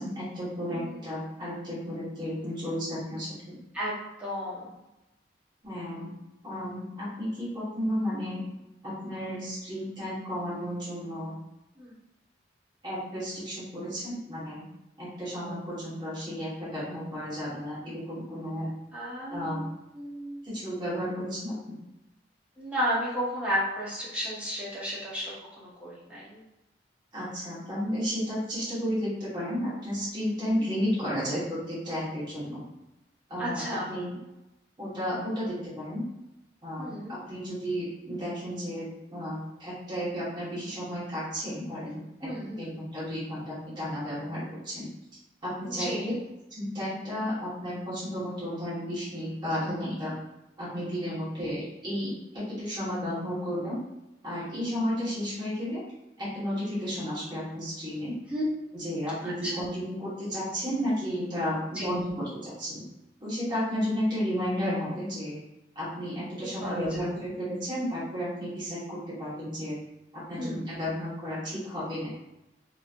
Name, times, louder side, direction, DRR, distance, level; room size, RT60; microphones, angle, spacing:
voice 1, 0.0-3.6 5.6-6.1 6.4-8.4 8.8-11.4 12.8-14.6 15.0-18.7 19.3-19.6 20.4-21.8 27.1-32.6 33.3-33.6 33.9-34.1 34.8-36.0 36.6-42.3 42.6-44.9 45.4-46.1 46.5-50.1 50.6-53.8 54.2-55.8 56.2-58.2 58.7-62.8 63.2-65.4 65.7-69.8 70.1-72.2, equal, 25° right, -11 dB, 1.3 m, -33 dB
voice 2, 4.2-4.7 11.8-11.9 18.9-19.7 19.9-20.5 22.6-26.4 30.6-30.7 33.4-34.0 36.8-37.2 42.2-42.7 45.7-46.1 58.3-58.4 59.4-59.6 61.7-61.9 66.6-66.8 70.4-70.7, equal, 5° right, -8 dB, 0.9 m, -33 dB
3.0 x 2.7 x 2.5 m, 0.95 s
head